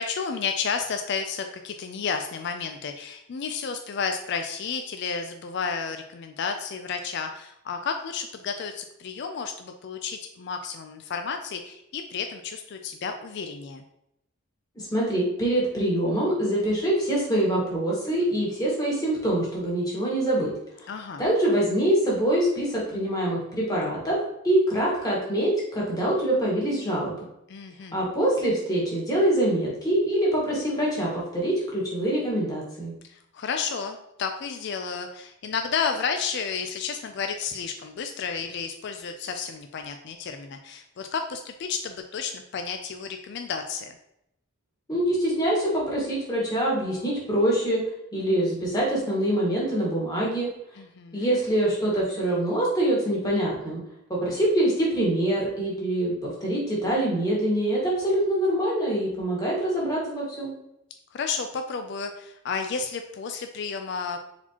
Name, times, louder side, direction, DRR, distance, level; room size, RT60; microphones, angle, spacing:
voice 1, 0.0-13.8 20.9-21.2 27.5-28.0 33.1-44.0 50.8-51.3 61.1-64.2, left 5 dB, 55° left, 6 dB, 0.4 m, -32 dB
voice 2, 14.7-20.5 20.8-20.9 21.2-24.2 24.4-27.1 27.9-32.9 44.9-47.8 48.1-50.5 51.1-53.8 54.1-60.5, right 1 dB, 20° left, -5 dB, 1.6 m, -24 dB
4.2 x 4.2 x 2.9 m, 0.81 s
head